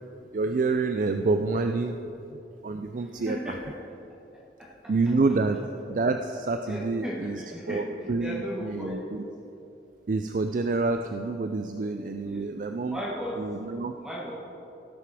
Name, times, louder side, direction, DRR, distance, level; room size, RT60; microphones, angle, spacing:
voice 1, 0.3-2.0 2.6-3.6 4.9-5.6 5.9-9.2 10.1-13.0 13.4-13.9, right 3 dB, 45° right, 6 dB, 0.4 m, -28 dB
voice 2, 3.1-3.7 6.7-9.0 12.3-12.4 12.9-13.3 14.0-14.3, equal, 5° right, -6 dB, 1.2 m, -35 dB
17.0 x 6.8 x 4.8 m, 2.9 s
head